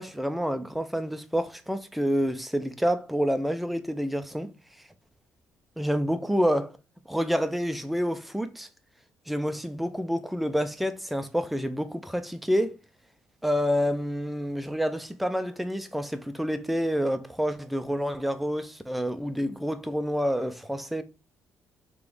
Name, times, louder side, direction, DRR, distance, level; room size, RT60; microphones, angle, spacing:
voice 1, 0.0-4.5 5.8-6.8 7.1-8.7 9.3-12.8 13.4-21.0, equal, ahead, 0.3 m, -28 dB
3.6 x 2.9 x 3.2 m
cardioid pair, 145°, 5 cm